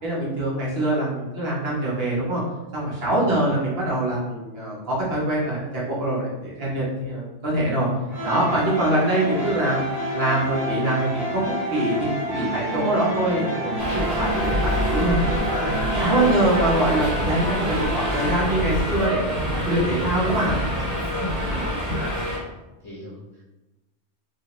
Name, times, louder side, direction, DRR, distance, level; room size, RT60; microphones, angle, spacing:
voice 1, 0.0-2.4 2.7-7.9 8.2-9.8 10.1-15.2 15.5-19.3 19.7-20.6, right 1 dB, 65° right, -5 dB, 1.1 m, -24 dB
voice 2, 3.1-3.5 20.8-21.0 21.6-22.4 22.8-23.4, equal, 20° left, -9 dB, 0.9 m, -40 dB
sound 1, 8.1-18.3, right 1 dB, 45° left, 1.9 m, -29 dB
Subway metro underground, 13.8-22.4, equal, 15° right, 1.5 m, -26 dB
3.2 x 2.7 x 2.9 m, 1.0 s
omnidirectional pair, 1.1 m